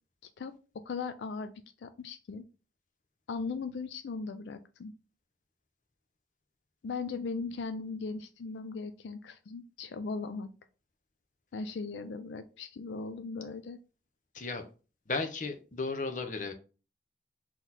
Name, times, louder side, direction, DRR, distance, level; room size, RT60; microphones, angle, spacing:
voice 1, 0.4-1.5 1.8-2.4 3.3-4.9 6.8-10.5 11.5-13.8, left 4 dB, 85° left, 10 dB, 0.4 m, -38 dB
voice 2, 14.3-14.7 15.1-16.5, left 3 dB, 45° left, 6 dB, 0.7 m, -34 dB
4.0 x 3.0 x 4.0 m, 0.34 s
head